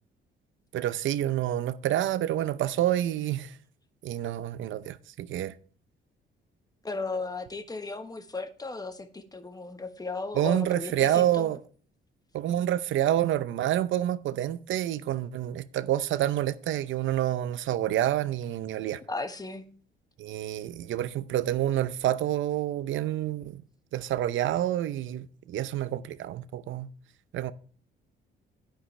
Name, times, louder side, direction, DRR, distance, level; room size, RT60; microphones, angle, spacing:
voice 1, 0.7-3.5 4.0-5.5 10.4-11.6 12.3-19.0 20.2-23.6 23.9-26.9 27.3-27.5, right 12 dB, 75° right, 0.7 m, -28 dB
voice 2, 6.8-11.5 19.1-19.7, left 3 dB, 20° left, 1.3 m, -35 dB
10.0 x 10.0 x 3.2 m
cardioid pair, 90°, 20 cm